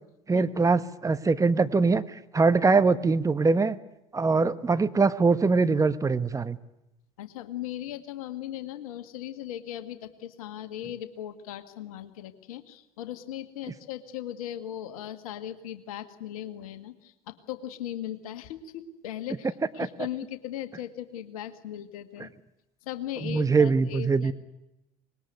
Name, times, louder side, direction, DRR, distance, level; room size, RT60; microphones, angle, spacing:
voice 1, 0.3-3.8 4.1-6.6 23.2-24.3, right 4 dB, 20° right, 12 dB, 1.3 m, -23 dB
voice 2, 7.2-22.3 22.8-24.3, left 11 dB, 70° left, 10 dB, 1.8 m, -38 dB
25.0 x 20.5 x 9.6 m, 0.92 s
hypercardioid pair, 70°, 19 cm